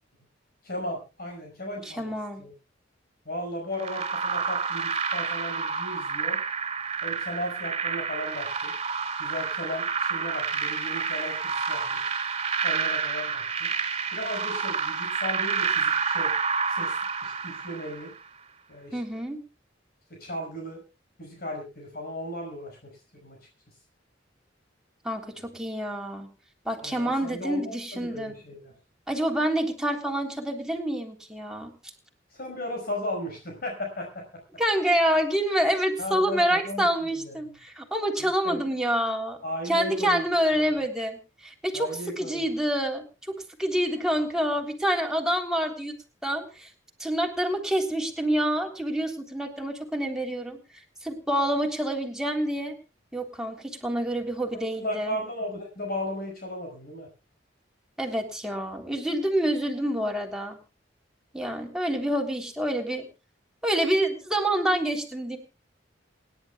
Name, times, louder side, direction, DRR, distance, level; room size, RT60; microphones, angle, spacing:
voice 1, 0.6-2.1 2.4-2.5 3.3-6.4 7.0-8.7 9.2-12.1 12.6-13.7 14.1-16.3 16.7-18.1 18.7-19.2 20.1-20.8 21.2-23.4 26.8-27.6 27.9-28.7 32.3-34.3 36.0-37.3 38.2-38.6 39.4-40.3 40.5-40.8 41.7-42.5 54.8-57.1, left 1 dB, 55° left, 1 dB, 5.6 m, -36 dB
voice 2, 1.8-2.4 18.9-19.4 25.0-26.3 26.6-28.3 29.1-31.7 34.6-39.4 39.6-43.0 43.6-45.9 46.2-46.7 47.0-50.6 51.0-52.7 53.1-55.1 58.0-60.6 61.3-63.1 63.6-65.4, equal, 5° right, 2 dB, 3.4 m, -27 dB
sound 1, 3.8-18.2, right 5 dB, 35° right, 2.6 m, -29 dB
27.5 x 11.5 x 2.3 m, 0.30 s
head